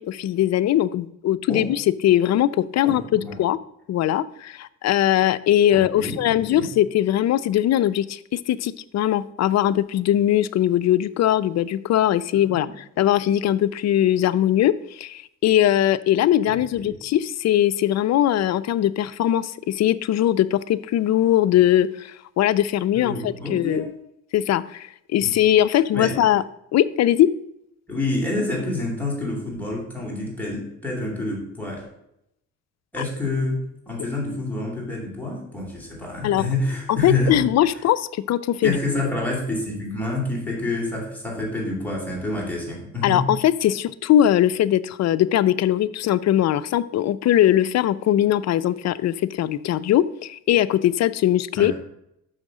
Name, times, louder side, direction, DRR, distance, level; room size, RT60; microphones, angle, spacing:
voice 1, 0.0-3.6 3.9-23.9 24.3-26.4 26.7-27.3 36.2-36.5 36.9-38.8 43.0-51.7, left 12 dB, 60° left, 16 dB, 0.5 m, -20 dB
voice 2, 2.8-3.4 5.7-6.7 12.4-12.7 16.5-16.6 16.9-17.0 22.9-23.9 25.2-25.3 25.9-26.1 27.9-31.9 32.9-37.5 38.6-43.3 51.6-51.7, left 2 dB, 5° left, -2 dB, 3.0 m, -28 dB
6.5 x 6.2 x 4.9 m, 0.78 s
cardioid pair, 90°, 30 cm